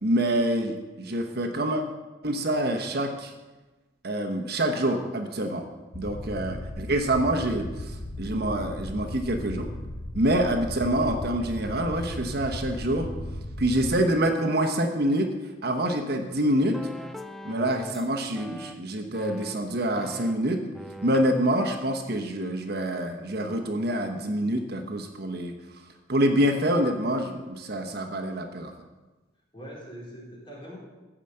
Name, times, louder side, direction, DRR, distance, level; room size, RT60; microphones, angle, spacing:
voice 1, 0.0-1.8 2.2-3.3 4.0-5.6 5.9-9.7 10.1-13.1 13.6-15.3 15.6-16.8 17.4-20.6 21.0-25.5 26.1-28.7, right 1 dB, 55° right, 4 dB, 1.1 m, -26 dB
sound 1, 5.9-13.9, left 1 dB, 50° left, 1.4 m, -36 dB
sound 2, 16.5-18.1 18.3-18.7 19.1-19.5 19.9-20.3 20.7-21.3, left 1 dB, ahead, 0.5 m, -41 dB
voice 2, 29.5-30.8, equal, 25° left, -4 dB, 3.7 m, -43 dB
14.5 x 5.0 x 7.8 m, 1.2 s
head